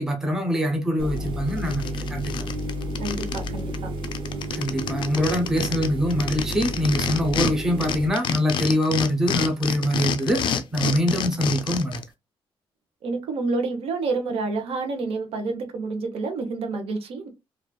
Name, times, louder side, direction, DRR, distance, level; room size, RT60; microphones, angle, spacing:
voice 1, 0.0-2.5 4.5-12.0, equal, 5° right, 0.5 m, -24 dB
sound 1, 1.0-8.1, right 1 dB, 60° right, 0.4 m, -31 dB
sound 2, 1.2-1.3 1.6-3.5 3.7-3.8 4.0-7.5 7.8-12.0, left 7 dB, 55° left, 0.4 m, -28 dB
voice 2, 3.0-3.9 13.0-17.3, right 3 dB, 75° right, 0.8 m, -28 dB
3.0 x 2.4 x 2.2 m
wide cardioid pair, 180°, 10 cm